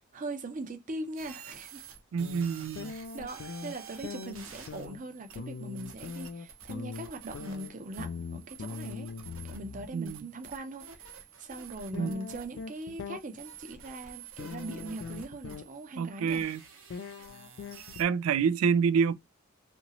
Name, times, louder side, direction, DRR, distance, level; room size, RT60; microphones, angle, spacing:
voice 1, 0.1-1.8 2.9-9.1 9.5-10.8 11.4-16.4, right 2 dB, 40° right, 0.6 m, -41 dB
sound 1, 1.2-18.0, right 7 dB, 70° right, 0.8 m, -50 dB
voice 2, 2.1-2.9 9.9-10.3 12.0-12.2 16.0-16.6 18.0-19.1, right 6 dB, 85° right, 0.3 m, -27 dB
sound 2, 2.2-3.8 4.0-9.9 11.9-13.2 14.4-15.6 16.9-18.3, left 5 dB, 55° left, 0.3 m, -41 dB
2.9 x 2.6 x 2.9 m
head